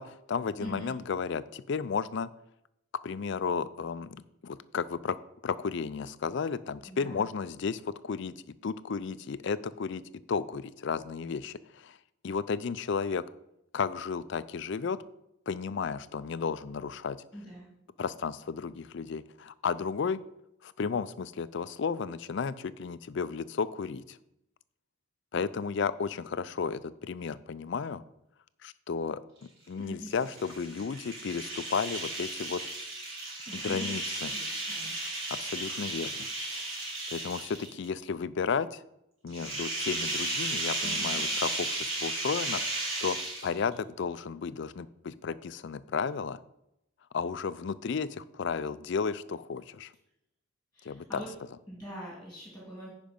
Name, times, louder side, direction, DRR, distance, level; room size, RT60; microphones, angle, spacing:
voice 1, 0.0-2.3 3.0-4.2 4.4-5.2 5.4-8.3 8.6-10.0 10.3-12.0 12.2-13.2 13.7-15.0 15.5-17.2 18.0-20.2 20.6-24.2 25.3-28.0 28.6-29.2 29.7-32.6 33.5-34.3 35.4-36.3 36.5-36.7 37.1-38.8 39.2-46.4 47.1-49.9 50.8-51.2, left 5 dB, 55° left, 16 dB, 0.4 m, -33 dB
voice 2, 0.6-0.9 6.9-7.2 17.3-17.7 29.8-30.3 33.5-33.9 34.2-35.0 40.8-41.3 50.7-51.3 51.7-52.9, equal, 5° left, -5 dB, 2.5 m, -43 dB
sound 1, 30.1-37.8 39.3-43.7, right 2 dB, 65° right, 3.6 m, -34 dB
10.0 x 5.2 x 5.2 m, 0.84 s
head